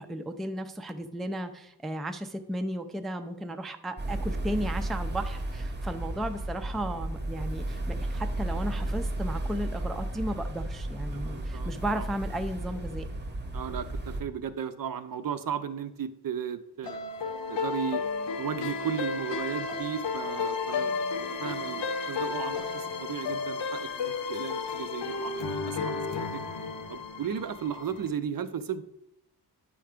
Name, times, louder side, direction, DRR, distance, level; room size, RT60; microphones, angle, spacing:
voice 1, 0.0-13.1, right 1 dB, ahead, 6 dB, 0.3 m, -34 dB
sound 1, 4.0-14.2, right 1 dB, 25° right, 0.8 m, -33 dB
voice 2, 11.1-12.1 13.5-17.0 17.5-18.0 18.4-26.0 26.3-26.4 26.9-28.8, right 8 dB, 55° right, 12 dB, 0.5 m, -35 dB
sound 2, 16.8-28.1, left 4 dB, 85° left, 0.7 m, -33 dB
9.0 x 3.4 x 5.0 m, 0.79 s
wide cardioid pair, 130°, 42 cm